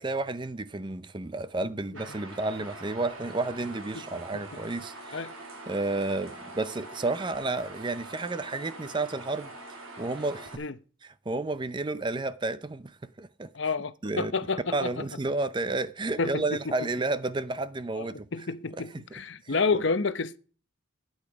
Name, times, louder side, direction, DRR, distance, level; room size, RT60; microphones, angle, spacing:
voice 1, 0.0-5.3 5.7-9.5 10.0-10.6 11.3-13.5 14.0-14.3 14.7-18.3 18.9-19.0 19.4-19.6, right 2 dB, 20° right, 0.5 m, -31 dB
sound 1, 1.9-10.6, right 2 dB, 80° right, 3.1 m, -44 dB
voice 2, 3.9-4.4 5.1-5.3 10.6-10.7 13.5-15.1 16.2-16.7 18.0-20.4, left 4 dB, 55° left, 0.8 m, -30 dB
12.0 x 8.8 x 5.0 m
head